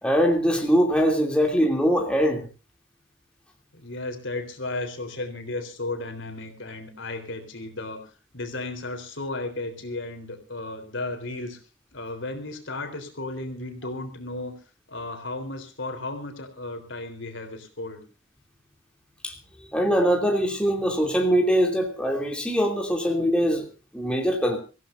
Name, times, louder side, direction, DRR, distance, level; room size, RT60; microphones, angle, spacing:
voice 1, 0.0-2.5 19.2-19.3 19.6-23.7 23.9-24.6, equal, 5° left, 1 dB, 2.8 m, -22 dB
voice 2, 3.7-11.6 11.9-14.6 14.9-18.0, left 2 dB, 65° left, 6 dB, 3.7 m, -34 dB
25.5 x 15.5 x 2.6 m, 0.32 s
head